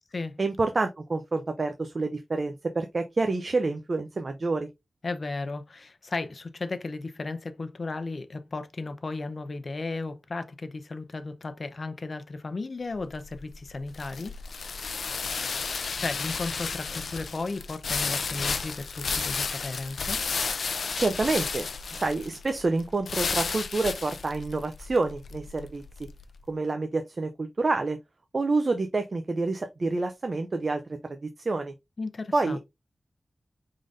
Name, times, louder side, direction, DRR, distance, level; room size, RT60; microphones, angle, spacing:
voice 1, 0.4-4.7 21.0-26.1 26.5-28.0 28.3-30.8 31.1-31.7 32.3-32.6, right 3 dB, 50° right, 0.6 m, -28 dB
voice 2, 5.0-14.3 15.7-20.2 32.0-32.6, left 3 dB, 55° left, 0.7 m, -35 dB
sound 1, 12.9-26.2, left 5 dB, 90° left, 0.5 m, -32 dB
5.0 x 3.8 x 2.6 m
wide cardioid pair, 80°, 0 cm